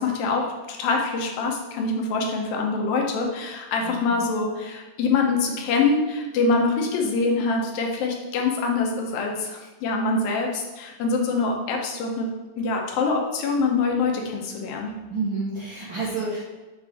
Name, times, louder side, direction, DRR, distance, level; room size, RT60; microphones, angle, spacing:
voice 1, 0.0-12.3 12.6-14.9, left 4 dB, 85° left, 1 dB, 2.7 m, -24 dB
voice 2, 3.8-4.1 15.1-16.5, right 3 dB, 55° right, -8 dB, 1.5 m, -29 dB
7.1 x 5.2 x 3.5 m, 1.2 s
omnidirectional pair, 4.0 m